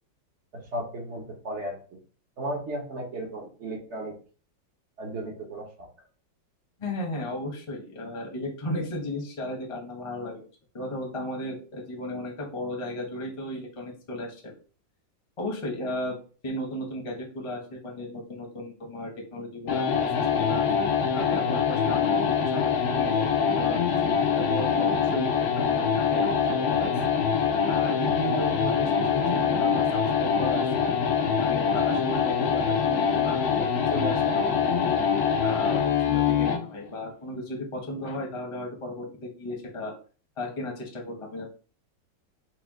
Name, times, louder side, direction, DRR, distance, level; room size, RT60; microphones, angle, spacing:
voice 1, 0.7-1.8 2.4-4.2 5.0-5.9, right 1 dB, 50° right, 0 dB, 0.9 m, -34 dB
voice 2, 6.8-10.4 10.7-14.5 15.4-16.2 16.4-19.9 20.1-20.6 21.1-23.3 23.6-27.0 27.6-30.7 31.4-35.0 35.4-39.9 40.4-41.5, left 1 dB, 25° left, 0 dB, 0.7 m, -35 dB
sound 1, 19.7-36.7, left 6 dB, 75° left, 0.9 m, -24 dB
4.4 x 2.3 x 3.6 m, 0.39 s
omnidirectional pair, 2.1 m